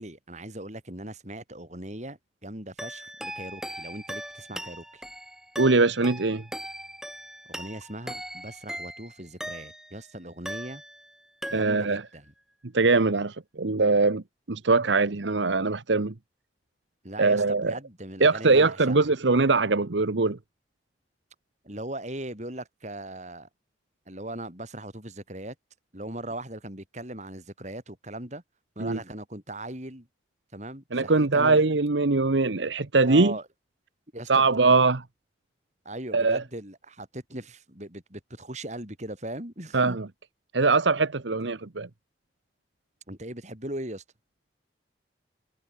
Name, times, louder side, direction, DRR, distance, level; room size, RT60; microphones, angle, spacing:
voice 1, 0.0-5.0 7.5-10.8 11.5-12.3 17.0-19.1 21.6-23.5 24.1-25.5 25.9-28.4 28.8-30.1 30.5-31.6 33.0-33.5 34.1-34.8 35.9-40.0 43.1-44.0, right 1 dB, 40° right, 7.4 m, -39 dB
sound 1, 2.8-10.0 10.4-11.1 11.4-12.0, equal, 5° right, 2.9 m, -39 dB
voice 2, 5.6-6.4 11.5-12.0 12.7-14.2 14.5-16.1 17.2-17.7 18.2-20.4 28.8-29.0 30.9-33.3 34.3-35.0 36.1-36.4 39.7-40.1 40.5-41.9, right 3 dB, 85° right, 1.1 m, -22 dB
head